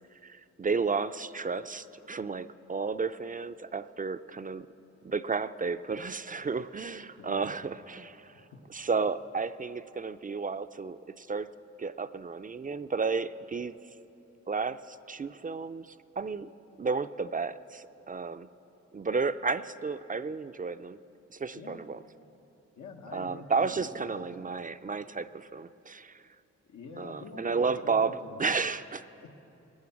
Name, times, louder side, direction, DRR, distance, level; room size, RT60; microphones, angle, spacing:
voice 1, 0.2-4.7 5.0-8.3 8.7-11.5 11.8-13.8 14.5-16.5 16.8-18.5 18.9-21.0 21.3-22.0 23.1-26.2 27.0-29.0, right 4 dB, 30° right, 12 dB, 0.4 m, -32 dB
voice 2, 7.2-7.6 8.3-8.6 21.6-21.8 22.8-24.5 26.6-28.4 29.2-29.3, left 4 dB, 90° left, 3 dB, 1.2 m, -46 dB
18.0 x 9.5 x 7.1 m, 2.9 s
cardioid pair, 70°, 29 cm